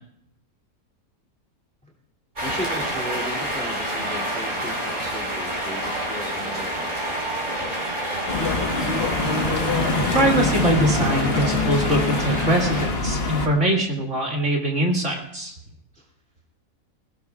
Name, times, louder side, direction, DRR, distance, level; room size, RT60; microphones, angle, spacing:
voice 1, 2.4-7.1 15.9-16.1, equal, 5° left, -1 dB, 2.6 m, -36 dB
sound 1, 2.4-12.9, right 1 dB, 35° right, 5.0 m, -28 dB
sound 2, 8.3-13.5, left 3 dB, 45° left, 1.4 m, -24 dB
voice 2, 10.1-15.5, right 1 dB, 50° right, -1 dB, 2.4 m, -22 dB
21.5 x 17.0 x 2.4 m, 0.72 s
omnidirectional pair, 1.6 m